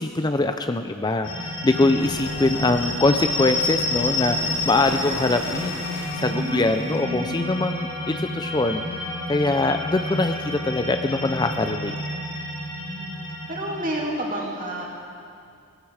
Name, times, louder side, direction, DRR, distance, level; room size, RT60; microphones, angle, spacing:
voice 1, 0.0-5.8 6.2-8.8 9.3-11.9, left 2 dB, 20° left, 7 dB, 0.4 m, -23 dB
sound 1, 1.2-14.0, left 2 dB, 85° left, 4.2 m, -30 dB
sound 2, 2.0-7.0, left 3 dB, 65° left, 0.9 m, -36 dB
voice 2, 6.2-7.5 12.8-13.1 13.5-14.9, right 1 dB, 40° right, -3 dB, 2.8 m, -30 dB
19.0 x 15.0 x 4.8 m, 2.4 s
head